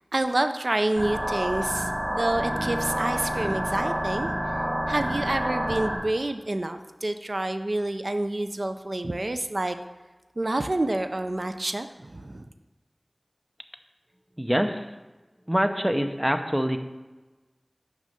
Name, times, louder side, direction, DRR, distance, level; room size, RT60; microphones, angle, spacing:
voice 1, 0.1-4.3 4.9-9.8 10.4-12.5, right 1 dB, 70° right, 8 dB, 0.4 m, -28 dB
sound 1, 1.0-6.0, equal, 30° right, 1.8 m, -29 dB
Bowed string instrument, 1.8-6.0, right 1 dB, 85° right, 0.9 m, -37 dB
voice 2, 14.4-14.9 15.5-16.8, equal, 15° right, 6 dB, 0.7 m, -25 dB
6.2 x 5.3 x 6.7 m, 1.2 s
wide cardioid pair, 45°, 0 cm